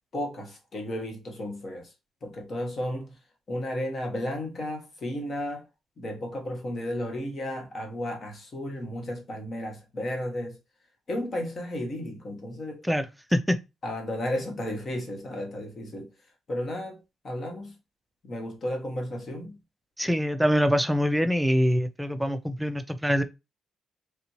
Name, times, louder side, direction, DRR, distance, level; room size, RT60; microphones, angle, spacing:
voice 1, 0.1-1.9 2.2-3.2 3.5-5.7 6.0-10.6 11.1-12.8 13.8-16.1 16.5-17.7 18.2-19.6, left 1 dB, 45° left, 1.2 m, -33 dB
voice 2, 12.8-13.6 20.0-23.2, equal, 5° right, 0.5 m, -24 dB
3.4 x 2.6 x 2.9 m
cardioid pair, 90°, 0 cm